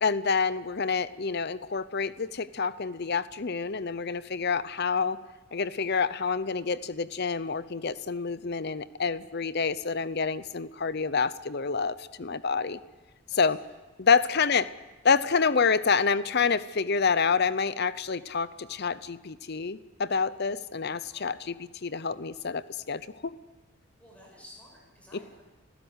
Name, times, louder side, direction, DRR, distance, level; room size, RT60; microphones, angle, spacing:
voice 1, 0.0-5.2 5.5-12.8 13.3-13.6 14.0-14.6 15.0-21.5 21.8-23.3 25.1-25.2, left 5 dB, 50° left, 16 dB, 0.7 m, -27 dB
voice 2, 13.3-13.7 14.3-14.4 21.1-21.6 24.0-25.4, left 1 dB, 5° left, -2 dB, 7.8 m, -53 dB
28.0 x 15.5 x 8.1 m, 1.2 s
head